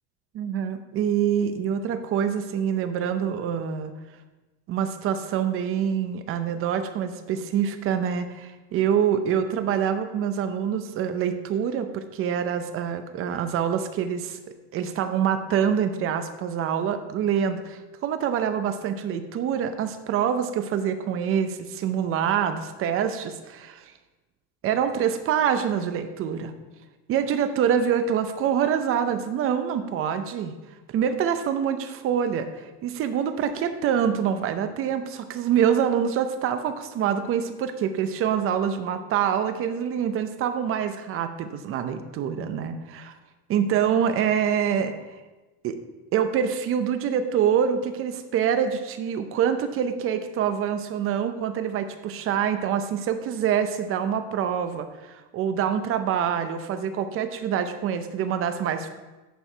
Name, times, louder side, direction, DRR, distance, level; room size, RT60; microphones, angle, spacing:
voice 1, 0.3-3.9 4.7-14.4 14.7-23.9 24.6-26.5 27.1-30.5 30.9-32.5 32.8-43.1 43.5-44.9 45.6-45.8 46.1-58.9, right 8 dB, 40° right, 9 dB, 0.7 m, -25 dB
10.0 x 4.6 x 4.4 m, 1.2 s
cardioid pair, 150°, 35 cm